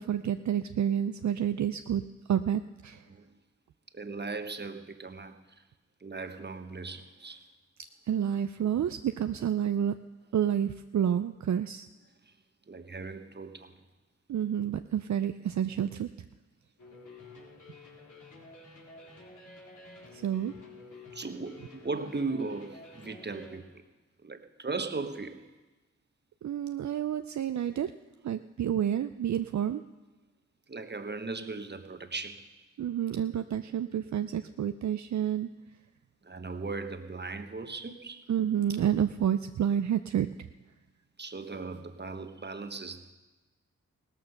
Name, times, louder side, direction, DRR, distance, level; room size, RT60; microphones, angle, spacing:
voice 1, 0.0-2.0 2.3-3.0 8.1-10.0 10.3-11.9 14.3-16.1 20.1-20.5 26.4-27.9 28.2-29.8 32.8-35.5 38.3-40.3, right 9 dB, 65° right, 10 dB, 0.5 m, -29 dB
voice 2, 3.9-5.4 6.0-7.4 12.2-12.3 12.7-13.7 21.1-23.8 24.2-25.4 30.7-32.5 36.2-38.2 41.2-43.1, right 3 dB, 35° right, 8 dB, 1.2 m, -38 dB
sound 1, 16.8-23.5, left 3 dB, 75° left, 3.7 m, -50 dB
17.0 x 13.5 x 5.8 m, 1.2 s
cardioid pair, 50°, 30 cm